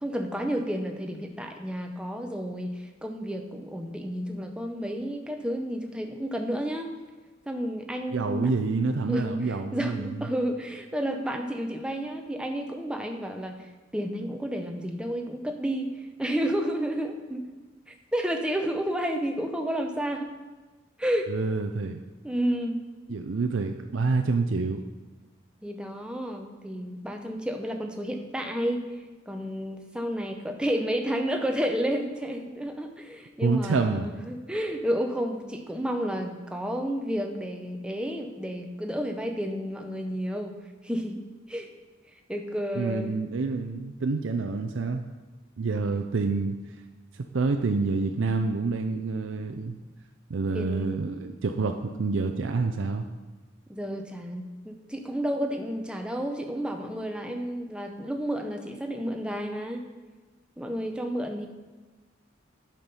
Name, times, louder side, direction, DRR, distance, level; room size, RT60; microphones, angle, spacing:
voice 1, 0.0-6.9 7.5-8.7 9.1-17.5 17.9-20.3 21.0-21.3 22.2-22.8 25.6-28.9 29.3-40.5 40.8-41.2 41.5-41.7 42.3-43.4 50.5-51.0 53.7-59.8 60.6-61.5, equal, 5° right, 3 dB, 0.7 m, -31 dB
voice 2, 8.1-10.2 21.3-22.0 23.1-24.8 33.4-34.1 42.7-45.0 45.6-46.6 47.1-49.8 50.3-53.0, right 4 dB, 80° right, 5 dB, 0.5 m, -27 dB
8.7 x 5.9 x 5.4 m, 1.3 s
head